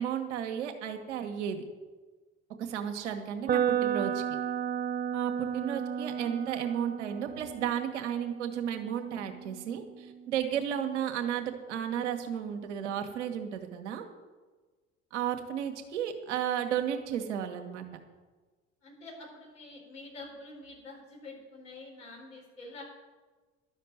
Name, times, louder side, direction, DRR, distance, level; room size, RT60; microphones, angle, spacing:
voice 1, 0.0-1.6 2.6-4.2 5.1-14.0 15.1-17.8, right 9 dB, 70° right, 5 dB, 1.5 m, -33 dB
sound 1, 3.5-11.4, right 9 dB, 25° right, 0.6 m, -34 dB
voice 2, 18.8-22.8, left 2 dB, 75° left, -4 dB, 4.6 m, -47 dB
11.5 x 6.6 x 9.3 m, 1.3 s
figure-of-eight pair, 60°, 37 cm